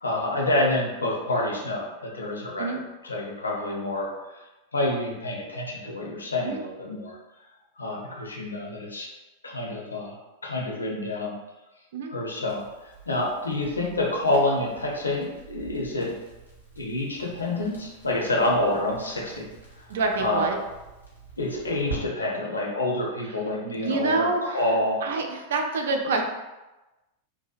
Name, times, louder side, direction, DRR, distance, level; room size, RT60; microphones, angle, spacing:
voice 1, 0.0-4.4 4.7-7.2 7.8-9.1 9.4-11.4 12.1-16.2 16.8-19.5 19.8-20.5 21.4-25.0, left 1 dB, 75° left, -1 dB, 0.5 m, -28 dB
Crackle, 12.4-22.0, right 4 dB, 90° right, 0.7 m, -45 dB
voice 2, 19.9-20.6 23.7-26.2, right 3 dB, 60° right, 3 dB, 0.3 m, -27 dB
2.7 x 2.0 x 2.4 m, 1.1 s
figure-of-eight pair, 90°, 0 cm